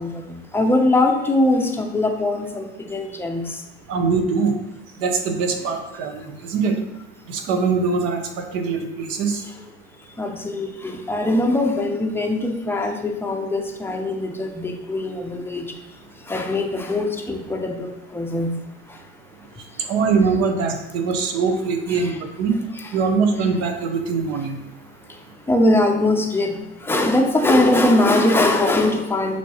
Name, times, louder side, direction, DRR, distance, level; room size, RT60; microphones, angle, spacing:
voice 1, 0.0-3.6 10.2-15.7 16.3-18.5 21.9-22.2 22.8-22.9 25.5-26.5 26.8-29.4, left 2 dB, 5° left, 2 dB, 0.7 m, -21 dB
voice 2, 3.9-4.5 5.0-6.7 7.3-9.4 19.9-22.5 22.9-24.6, right 5 dB, 50° right, 5 dB, 0.9 m, -22 dB
6.0 x 3.0 x 2.9 m, 0.94 s
hypercardioid pair, 80°, 32 cm